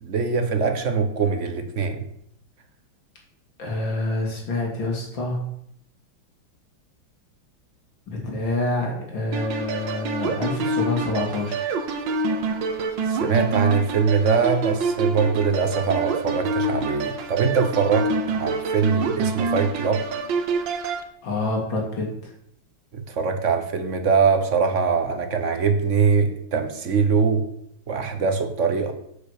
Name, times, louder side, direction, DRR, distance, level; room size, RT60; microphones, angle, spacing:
voice 1, 0.0-2.0 13.1-20.0 22.9-27.4 27.9-28.9, right 5 dB, 40° right, 7 dB, 1.3 m, -22 dB
voice 2, 3.6-5.4 8.1-11.7 21.2-22.3, left 2 dB, 65° left, 0 dB, 3.2 m, -27 dB
sound 1, 9.3-21.0, right 3 dB, 70° right, 1.7 m, -26 dB
7.6 x 6.6 x 6.8 m, 0.73 s
omnidirectional pair, 2.3 m